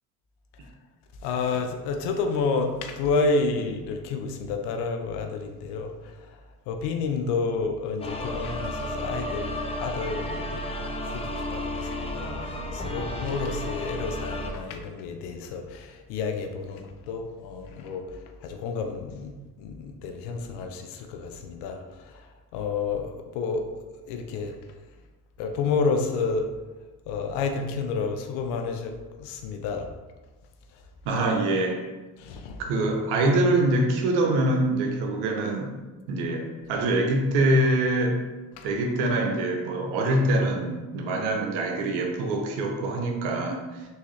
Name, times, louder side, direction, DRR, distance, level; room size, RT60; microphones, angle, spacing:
voice 1, 1.2-6.4 6.7-23.7 24.1-24.6 25.4-26.5 27.1-29.9 30.7-30.8 32.2-32.6 38.5-38.7, left 4 dB, 65° left, 4 dB, 0.6 m, -30 dB
sound 1, 8.0-14.5, left 1 dB, 15° left, 0.4 m, -32 dB
voice 2, 31.0-31.9 32.6-35.7 36.1-38.2 38.6-43.9, right 1 dB, 70° right, 2 dB, 0.8 m, -24 dB
3.5 x 2.7 x 3.1 m, 1.2 s
hypercardioid pair, 60°, 44 cm